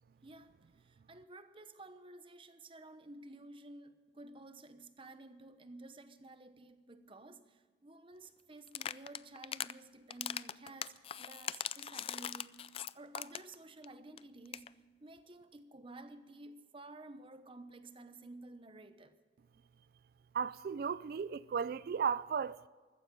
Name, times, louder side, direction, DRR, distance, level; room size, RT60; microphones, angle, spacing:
voice 1, 0.2-19.2, right 2 dB, 30° right, 1.0 m, -53 dB
sound 1, 8.7-9.7 10.1-13.6 13.8-13.9 14.2-14.3 14.5-14.7, left 9 dB, 35° left, 0.3 m, -40 dB
voice 2, 20.3-22.6, right 6 dB, 55° right, 0.3 m, -35 dB
14.5 x 14.5 x 5.3 m
head